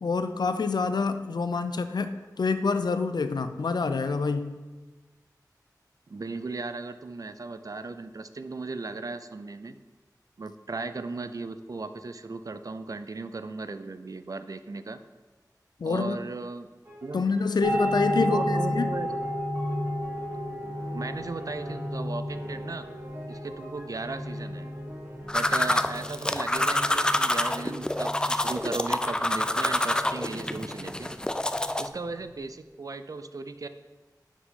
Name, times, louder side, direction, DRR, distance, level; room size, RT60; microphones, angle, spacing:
voice 1, 0.0-4.5 15.8-16.2 17.1-18.9, left 4 dB, 90° left, 10 dB, 0.5 m, -27 dB
voice 2, 6.1-9.8 10.4-15.0 15.8-16.7 17.0-17.3 18.2-19.1 20.9-22.9 23.3-24.7 25.3-31.1 31.8-33.7, right 3 dB, 55° right, 10 dB, 0.5 m, -36 dB
sound 1, 16.8-25.5, equal, 35° right, 2.0 m, -46 dB
sound 2, 17.6-32.4, equal, 75° right, 2.2 m, -33 dB
sound 3, 25.3-31.9, left 1 dB, 10° left, 0.3 m, -27 dB
9.5 x 6.1 x 3.7 m, 1.2 s
wide cardioid pair, 75°, 7 cm